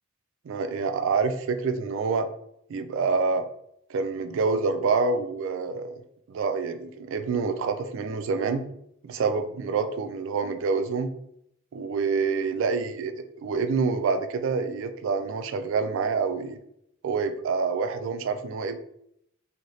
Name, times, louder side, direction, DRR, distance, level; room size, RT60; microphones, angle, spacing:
voice 1, 0.5-2.3 2.7-3.4 3.9-6.0 6.3-8.6 9.0-11.1 11.7-16.6 17.0-18.8, right 4 dB, 65° right, 9 dB, 0.3 m, -27 dB
2.7 x 2.7 x 3.0 m, 0.74 s
head